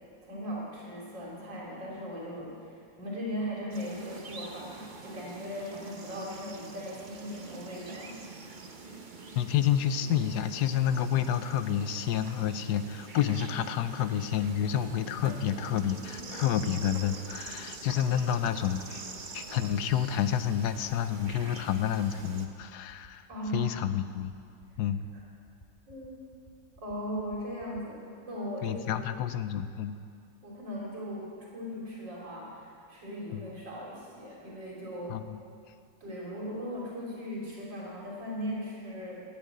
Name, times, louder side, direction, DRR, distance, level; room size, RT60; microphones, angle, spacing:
voice 1, 0.2-8.2 23.3-23.7 25.9-26.2 26.8-28.0 28.3-29.0 30.4-35.2 36.0-39.2, equal, 75° right, -4 dB, 3.5 m, -38 dB
sound 1, 3.7-22.5, right 4 dB, 35° right, 0.8 m, -45 dB
voice 2, 9.4-19.1 19.3-23.3 23.5-24.3 24.8-25.0 28.6-30.0 33.3-33.5 35.1-35.4, left 9 dB, 70° left, 11 dB, 1.1 m, -29 dB
sound 2, 16.0-27.8, left 1 dB, 15° left, 1.1 m, -55 dB
13.5 x 8.2 x 9.1 m, 2.4 s
omnidirectional pair, 2.0 m